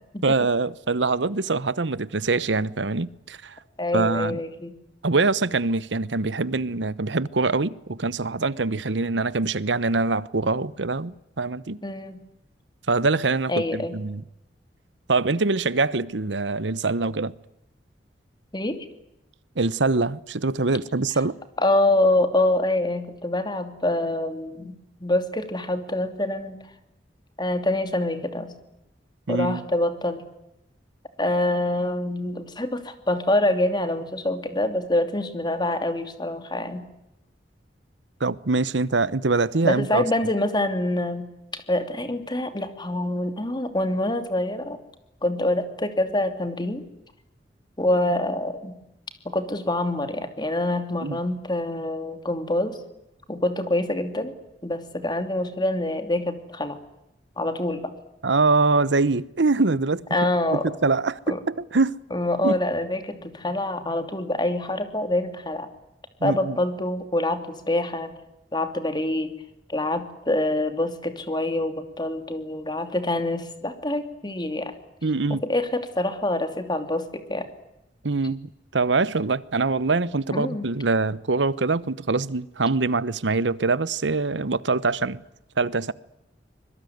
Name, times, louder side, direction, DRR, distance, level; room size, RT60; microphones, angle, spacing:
voice 1, 0.2-3.5 3.9-4.4 5.0-11.8 12.9-14.2 15.1-17.3 19.6-21.4 29.3-29.6 38.2-40.0 51.0-51.2 58.2-60.0 60.6-62.0 62.4-62.6 66.2-66.6 75.0-75.4 78.0-85.2 85.6-85.9, right 3 dB, 90° right, 1.0 m, -24 dB
voice 2, 3.8-4.7 11.8-12.2 13.5-13.9 18.5-18.8 21.6-24.8 25.0-26.6 27.4-28.5 29.3-30.2 31.2-36.8 39.6-41.3 41.5-44.8 45.2-46.8 47.8-48.7 49.2-52.8 53.3-54.3 54.6-56.8 57.4-57.9 60.1-60.6 61.3-61.4 62.1-65.7 66.2-68.1 68.5-69.3 69.7-74.7 75.4-77.5 80.3-80.6, left 1 dB, 25° left, 2.9 m, -25 dB
25.0 x 22.0 x 9.4 m
head